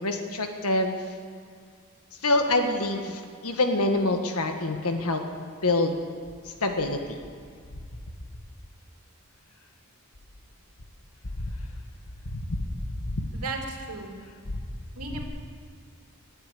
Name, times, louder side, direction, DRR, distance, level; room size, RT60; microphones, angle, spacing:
voice 1, 0.0-1.0 2.2-5.2 5.6-6.0 6.6-7.1 11.4-11.5 12.2-12.4 13.0-13.3, left 2 dB, 80° left, 5 dB, 1.6 m, -26 dB
voice 2, 13.3-14.2 14.9-15.2, right 3 dB, 90° right, 2 dB, 2.6 m, -35 dB
19.0 x 9.0 x 8.5 m, 2.1 s
head